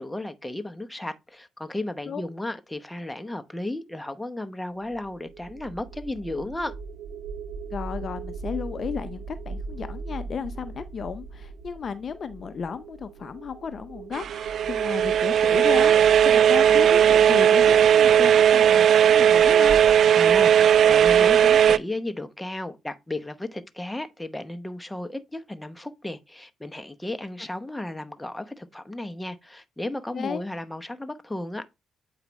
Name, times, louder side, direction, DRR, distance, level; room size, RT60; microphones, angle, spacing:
voice 1, 0.0-6.7 20.1-20.5 20.9-31.7, left 1 dB, 10° left, 0.9 m, -34 dB
sound 1, 4.8-19.9, right 4 dB, 85° right, 0.8 m, -40 dB
voice 2, 7.7-19.8 30.1-30.4, left 6 dB, 45° left, 0.5 m, -34 dB
sound 2, 14.1-21.8, right 9 dB, 60° right, 0.3 m, -17 dB
8.1 x 4.8 x 3.0 m
cardioid pair, 90°, 0 cm